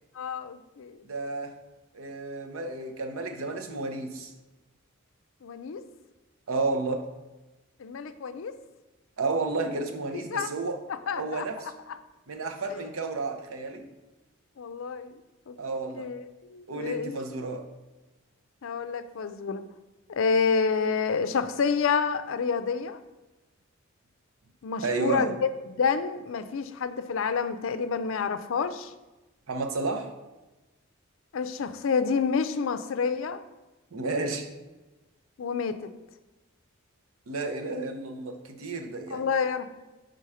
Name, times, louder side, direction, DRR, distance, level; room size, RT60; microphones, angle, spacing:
voice 1, 0.2-1.0 5.4-5.8 7.8-8.5 10.1-10.5 11.1-11.4 14.6-15.2 15.5-15.6 15.9-16.2 16.5-17.2 18.6-19.6 20.1-23.0 24.6-28.9 31.3-33.4 35.4-35.9 39.1-39.7, left 5 dB, 65° left, 10 dB, 0.4 m, -28 dB
voice 2, 1.0-1.5 1.9-4.3 6.5-7.1 9.2-10.8 11.1-11.7 12.3-13.9 15.6-16.1 16.7-17.7 24.8-25.3 29.5-30.1 33.9-34.5 37.3-39.3, right 3 dB, 80° right, 5 dB, 0.8 m, -31 dB
5.6 x 3.8 x 4.8 m, 1.1 s
head